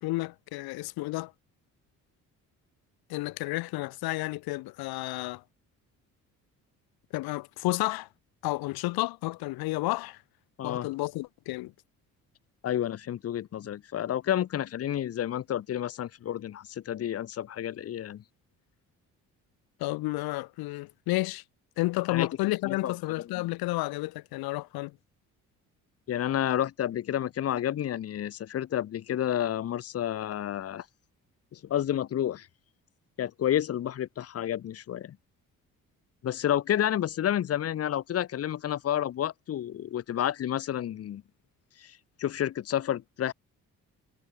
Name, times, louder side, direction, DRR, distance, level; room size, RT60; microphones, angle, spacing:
voice 1, 0.0-1.3 3.1-5.4 7.1-8.1 8.4-10.2 10.6-11.7 19.8-21.4 21.8-25.0, left 20 dB, 80° left, 1.3 m, -31 dB
voice 2, 12.6-18.2 22.1-22.3 22.6-22.9 26.1-30.8 31.5-32.5 33.2-35.2 36.2-41.2 41.8-43.3, left 11 dB, 40° left, 0.6 m, -30 dB
supercardioid pair, 65°, 36 cm